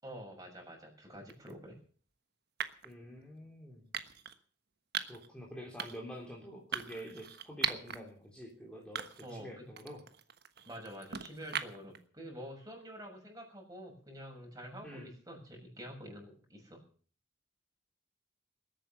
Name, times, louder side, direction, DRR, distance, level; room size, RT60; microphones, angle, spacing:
voice 1, 0.0-1.8 9.2-9.5 10.6-16.8, equal, 20° right, 0 dB, 6.7 m, -47 dB
sound 1, 1.3-1.5 2.6-2.9 3.9-4.4 4.9-5.3 5.8-6.1 6.7-8.0 8.4-8.5 9.0-9.4 9.8-12.0, right 8 dB, 60° right, 1.3 m, -39 dB
voice 2, 2.8-3.9 5.1-10.0 14.8-15.1, equal, 5° left, -3 dB, 3.1 m, -47 dB
21.0 x 9.1 x 6.9 m, 0.43 s
head